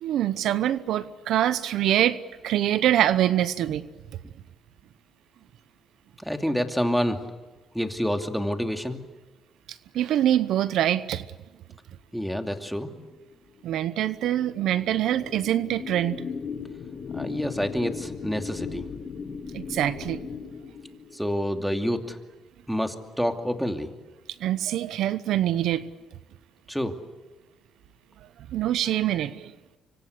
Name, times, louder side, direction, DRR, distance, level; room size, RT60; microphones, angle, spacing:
voice 1, 0.0-3.9 9.7-11.3 13.6-16.2 19.5-20.2 24.4-25.9 28.5-29.5, right 12 dB, 80° right, 0.9 m, -24 dB
voice 2, 6.2-7.2 7.7-9.0 12.1-12.9 17.1-18.9 21.1-22.2 22.7-23.9 26.7-26.9, equal, ahead, 2.6 m, -28 dB
sound 1, 12.6-21.4, left 5 dB, 50° left, 3.8 m, -38 dB
26.0 x 25.0 x 8.4 m
cardioid pair, 90°, 0 cm